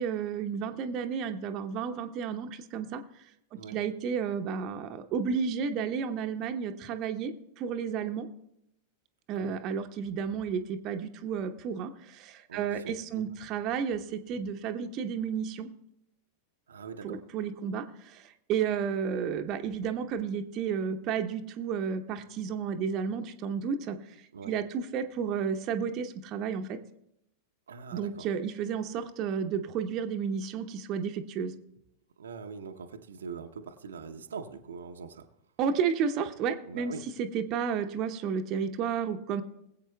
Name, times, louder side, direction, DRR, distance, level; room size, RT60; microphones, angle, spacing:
voice 1, 0.0-3.0 3.5-8.3 9.3-15.7 17.0-24.0 24.4-26.8 27.9-31.5 35.6-36.9 37.2-39.4, right 7 dB, 35° right, 6 dB, 0.8 m, -32 dB
voice 2, 12.5-13.2 16.7-17.2 24.3-24.5 27.7-28.3 32.2-35.3 36.7-37.0, right 5 dB, 70° right, 5 dB, 0.8 m, -43 dB
21.0 x 8.3 x 2.3 m, 0.80 s
figure-of-eight pair, 90°, 0 cm